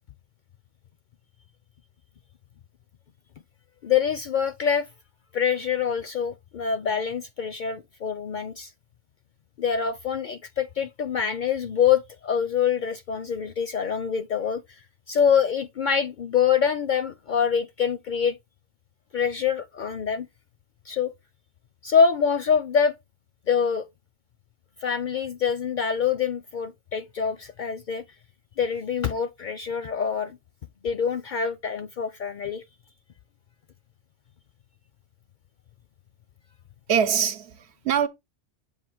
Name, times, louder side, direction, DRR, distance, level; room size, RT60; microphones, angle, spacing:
voice 1, 3.8-4.9 5.3-8.7 9.6-14.6 15.1-18.4 19.1-20.3 20.9-21.1 21.8-22.9 23.5-23.9 24.8-28.0 28.6-30.4 30.8-32.6, left 7 dB, 60° left, 0.5 m, -25 dB
voice 2, 36.9-38.1, right 8 dB, 75° right, 1.0 m, -23 dB
7.3 x 2.7 x 5.8 m
omnidirectional pair, 1.1 m